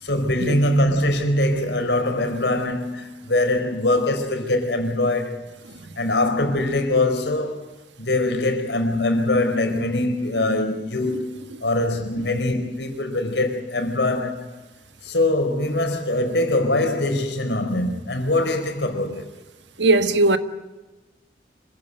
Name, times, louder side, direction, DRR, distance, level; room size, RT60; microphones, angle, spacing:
voice 1, 0.0-5.4 6.0-14.5 15.0-19.3, left 1 dB, 75° left, 4.5 m, -23 dB
voice 2, 19.8-20.4, right 2 dB, 85° right, 1.6 m, -18 dB
26.0 x 16.5 x 8.9 m
head